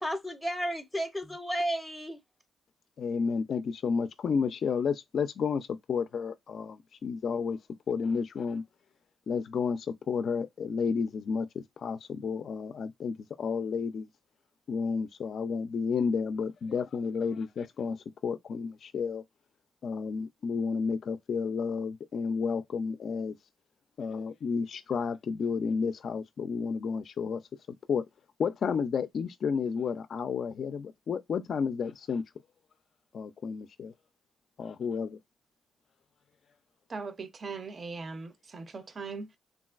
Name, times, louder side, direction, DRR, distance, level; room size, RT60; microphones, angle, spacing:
voice 1, 0.0-2.2, equal, ahead, 0.5 m, -32 dB
voice 2, 3.0-7.6 7.9-8.6 9.3-14.1 14.7-19.2 19.8-23.4 24.0-27.4 27.9-28.1 28.4-32.2 33.1-33.9 34.6-35.2, left 5 dB, 65° left, 0.3 m, -31 dB
voice 3, 36.9-39.4, right 4 dB, 45° right, 0.5 m, -40 dB
3.1 x 2.4 x 2.3 m
cardioid pair, 70°, 0 cm